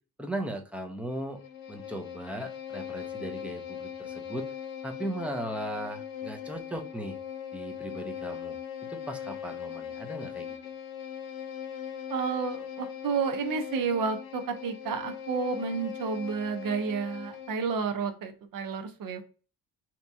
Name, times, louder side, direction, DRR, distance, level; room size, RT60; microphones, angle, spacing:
voice 1, 0.2-1.4 1.7-4.5 4.8-7.2 7.5-8.6 8.9-10.6, right 1 dB, 5° right, 0.6 m, -37 dB
Bowed string instrument, 1.1-17.7, left 8 dB, 85° left, 0.7 m, -40 dB
voice 2, 12.1-19.2, right 5 dB, 60° right, 0.8 m, -31 dB
3.4 x 2.9 x 2.6 m
cardioid pair, 130°, 36 cm